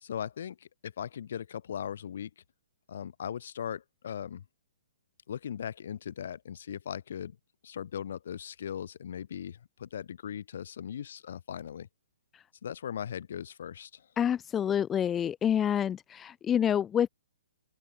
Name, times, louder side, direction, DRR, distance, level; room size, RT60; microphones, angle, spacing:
voice 1, 0.0-2.3 2.9-4.4 5.3-7.4 7.6-11.9 12.6-14.1, left 8 dB, 65° left, 0.7 m, -39 dB
voice 2, 14.2-17.1, left 9 dB, 15° left, 0.4 m, -27 dB
open air
hypercardioid pair, 145°, 0 cm